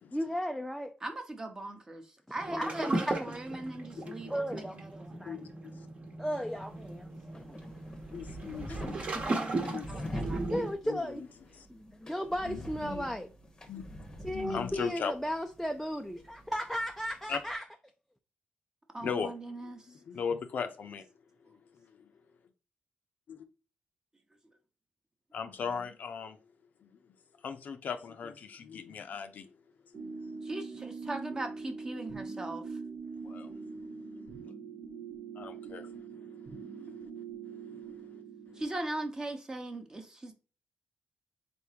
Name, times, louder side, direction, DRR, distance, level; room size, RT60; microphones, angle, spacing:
voice 1, 0.1-0.9 2.3-3.4 4.3-5.4 6.2-7.6 10.5-11.2 11.7-13.3 14.2-17.6, equal, ahead, 0.4 m, -35 dB
voice 2, 1.0-5.3 8.7-10.5 18.9-19.9 30.4-32.8 38.6-40.3, right 2 dB, 20° right, 0.8 m, -40 dB
sound 1, 2.4-10.7, right 2 dB, 40° right, 1.0 m, -37 dB
voice 3, 4.0-4.3 5.1-5.9 8.1-8.9 9.2-10.1 10.8-11.3 11.5-11.7 12.4-13.1 13.7-13.8 14.3-15.1 17.3-17.4 19.0-21.1 21.4-22.1 23.3-23.5 25.3-26.4 26.8-27.1 27.4-29.5 29.8-30.8 33.1-33.9 35.4-37.1 37.4-38.6, left 6 dB, 55° left, 0.5 m, -40 dB
sound 2, 6.5-17.6, equal, 20° left, 0.8 m, -45 dB
sound 3, 29.9-38.6, right 5 dB, 80° right, 1.1 m, -43 dB
4.0 x 3.5 x 2.8 m
cardioid pair, 130°, 3 cm